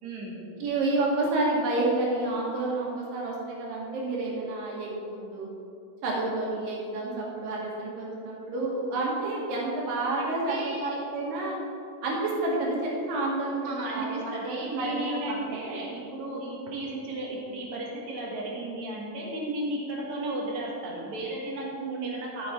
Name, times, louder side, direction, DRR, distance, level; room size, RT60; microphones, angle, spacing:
voice 1, 0.0-0.4 10.2-11.0 13.6-22.5, right 1 dB, 60° right, -2 dB, 2.8 m, -34 dB
voice 2, 0.6-5.5 6.0-11.6 12.0-15.6 21.8-22.2, right 2 dB, 80° right, -3 dB, 3.6 m, -29 dB
13.0 x 6.9 x 4.5 m, 2.5 s
omnidirectional pair, 3.9 m